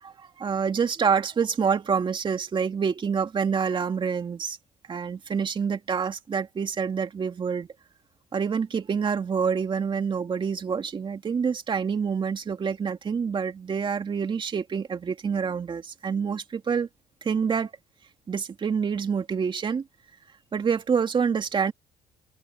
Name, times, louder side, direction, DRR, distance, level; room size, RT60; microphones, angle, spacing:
voice 1, 0.0-4.6 4.9-7.7 8.3-16.9 17.2-17.7 18.3-19.8 20.5-21.7, right 6 dB, 40° right, 2.4 m, -27 dB
open air
supercardioid pair, 85°, 13 cm